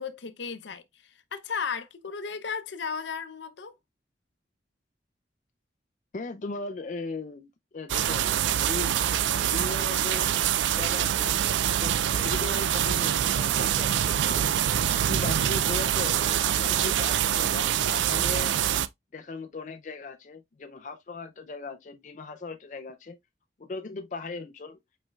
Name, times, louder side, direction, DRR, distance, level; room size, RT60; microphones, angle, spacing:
voice 1, 0.0-3.7, left 5 dB, 85° left, 0.6 m, -35 dB
voice 2, 6.1-9.0 9.3-10.3 10.8-11.4 11.8-12.0 12.2-14.7 15.1-18.5 19.1-23.2 23.6-24.8, left 3 dB, 45° left, 0.4 m, -38 dB
sound 1, 7.9-18.9, right 10 dB, 90° right, 0.4 m, -25 dB
5.1 x 4.3 x 2.3 m
head